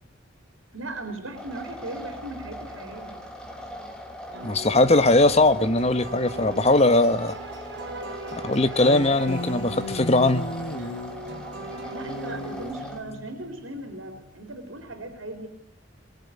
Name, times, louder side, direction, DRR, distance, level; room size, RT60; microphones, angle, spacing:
voice 1, 0.7-3.2 8.3-8.4 11.9-15.5, right 1 dB, 80° right, 5 dB, 4.0 m, -38 dB
sound 1, 1.3-13.0, equal, 5° left, 4.1 m, -40 dB
sound 2, 4.3-12.7, right 2 dB, 60° right, 4.2 m, -39 dB
voice 2, 4.4-7.3 8.3-10.5, left 2 dB, 35° left, 11 dB, 1.2 m, -20 dB
sound 3, 8.8-14.3, left 1 dB, 65° left, 1.6 m, -36 dB
22.5 x 22.0 x 9.6 m, 0.71 s
head